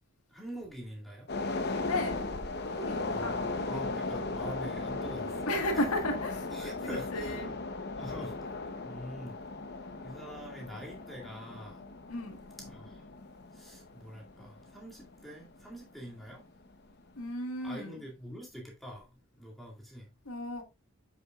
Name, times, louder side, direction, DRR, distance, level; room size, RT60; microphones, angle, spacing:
voice 1, 0.3-1.3 3.1-5.4 6.5-7.5 7.9-9.4 10.0-11.8 12.6-13.0 13.5-16.4 17.6-19.1 19.4-20.1, equal, ahead, 2.1 m, -45 dB
sound 1, 1.3-15.9 16.2-16.3, left 3 dB, 50° left, 0.9 m, -37 dB
voice 2, 1.8-2.3 2.6-3.4 5.5-7.5 12.1-12.4 17.2-18.0 20.3-20.6, left 1 dB, 85° left, 1.8 m, -34 dB
7.8 x 6.7 x 2.4 m
head